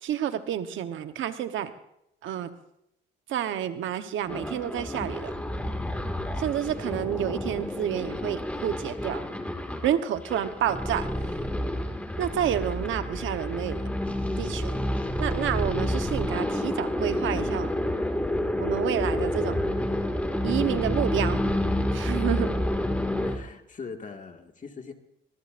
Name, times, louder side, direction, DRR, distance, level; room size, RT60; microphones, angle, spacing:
voice 1, 0.0-1.7 2.2-2.5 3.3-5.3 6.4-9.2 9.8-11.4 12.2-13.8 14.4-14.7 15.2-17.7 18.6-19.6 20.4-21.4 21.9-22.6, right 10 dB, 80° right, 9 dB, 1.1 m, -29 dB
sound 1, 4.3-23.4, left 1 dB, 5° left, 2.1 m, -29 dB
voice 2, 23.2-24.9, left 5 dB, 40° left, 4 dB, 2.0 m, -41 dB
24.0 x 19.5 x 2.6 m, 0.79 s
cardioid pair, 90°, 20 cm